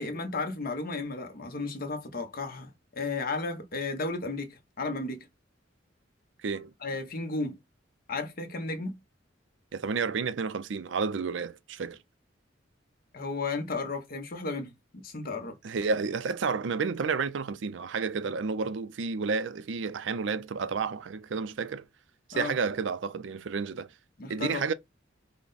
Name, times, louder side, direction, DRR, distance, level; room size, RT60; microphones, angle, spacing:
voice 1, 0.0-5.3 6.8-7.6 8.1-8.9 13.1-15.6 22.3-22.5 24.2-24.6, left 3 dB, 50° left, 0.9 m, -34 dB
voice 2, 9.7-12.0 15.6-21.9 22.3-23.9 24.3-24.7, right 5 dB, 70° right, 0.5 m, -31 dB
5.8 x 2.2 x 4.0 m
head